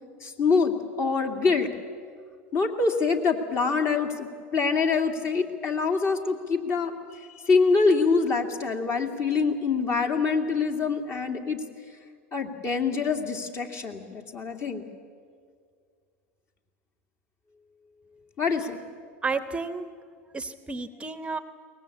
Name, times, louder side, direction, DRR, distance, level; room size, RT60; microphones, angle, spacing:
voice 1, 0.2-1.7 2.5-6.9 7.4-11.6 12.3-14.8 18.4-18.8, left 4 dB, 40° left, 4 dB, 2.5 m, -25 dB
voice 2, 19.2-19.9 20.3-21.4, right 4 dB, 15° right, 11 dB, 0.9 m, -31 dB
22.5 x 19.5 x 8.5 m, 2.1 s
hypercardioid pair, 100°, 7 cm